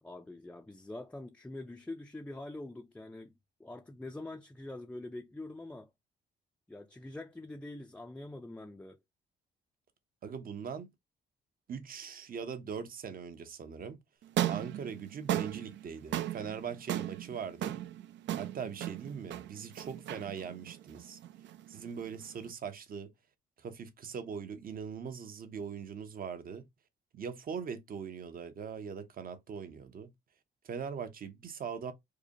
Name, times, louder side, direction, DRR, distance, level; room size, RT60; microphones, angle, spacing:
voice 1, 0.0-3.3 3.6-5.9 6.7-9.0, left 2 dB, 5° left, 0.4 m, -44 dB
voice 2, 10.2-10.9 11.7-14.0 14.5-17.8 18.4-21.2 21.7-23.1 23.6-26.6 27.1-30.1 30.6-31.9, right 6 dB, 45° right, 0.7 m, -41 dB
sound 1, 14.2-22.5, right 12 dB, 65° right, 0.4 m, -37 dB
4.8 x 2.2 x 2.8 m
cardioid pair, 90°, 20 cm